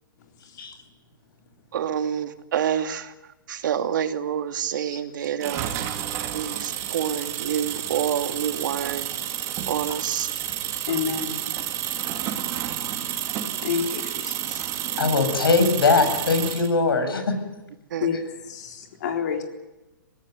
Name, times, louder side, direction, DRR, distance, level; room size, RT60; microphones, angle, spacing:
voice 1, 1.7-3.1 3.5-5.7 6.3-9.1 9.7-10.3 17.9-18.1, right 9 dB, 60° right, 7 dB, 2.5 m, -27 dB
sound 1, 5.4-16.7, right 11 dB, 25° right, 2.8 m, -30 dB
voice 2, 10.9-11.3 13.6-14.7 18.0-18.2 18.5-19.4, left 7 dB, 55° left, 3 dB, 3.9 m, -28 dB
voice 3, 15.0-17.4, left 4 dB, 90° left, 8 dB, 7.4 m, -21 dB
24.5 x 18.5 x 9.5 m, 1.1 s
hypercardioid pair, 155°, 12 cm